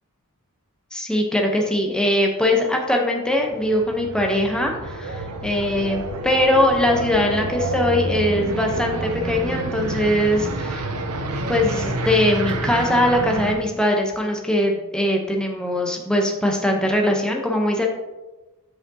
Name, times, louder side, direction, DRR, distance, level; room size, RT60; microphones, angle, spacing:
voice 1, 0.9-10.9 11.5-17.9, left 1 dB, 5° left, 1 dB, 0.8 m, -21 dB
sound 1, 3.4-13.6, right 2 dB, 85° right, 0.7 m, -29 dB
sound 2, 5.3-12.8, left 7 dB, 70° left, 2.2 m, -38 dB
8.1 x 4.9 x 2.8 m, 1.1 s
head